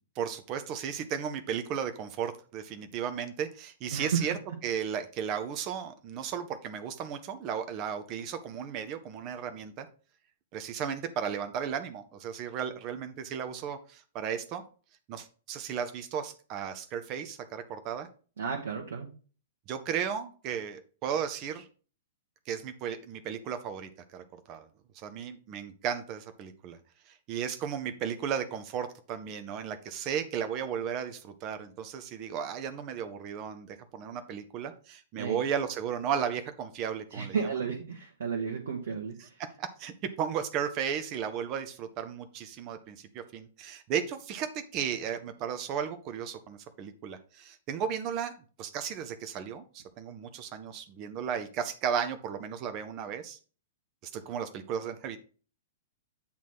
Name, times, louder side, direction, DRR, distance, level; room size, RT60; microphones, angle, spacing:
voice 1, 0.2-4.3 4.6-9.9 10.5-14.6 15.1-18.1 19.7-21.7 22.5-24.7 24.9-26.8 27.1-37.5 39.2-39.3 39.6-53.4 54.1-55.2, right 8 dB, 35° right, 8 dB, 0.7 m, -35 dB
voice 2, 3.9-4.3 18.4-19.1 35.2-35.4 37.1-39.3, right 6 dB, 60° right, 0 dB, 1.2 m, -32 dB
8.5 x 3.1 x 5.9 m, 0.38 s
figure-of-eight pair, 105°, 0 cm